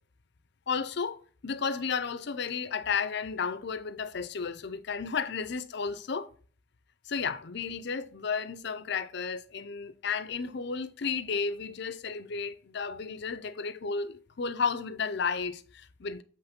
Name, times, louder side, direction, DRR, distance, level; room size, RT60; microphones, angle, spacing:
voice 1, 0.7-6.3 7.1-16.2, left 5 dB, 60° left, 0.6 m, -33 dB
8.0 x 3.2 x 5.2 m
head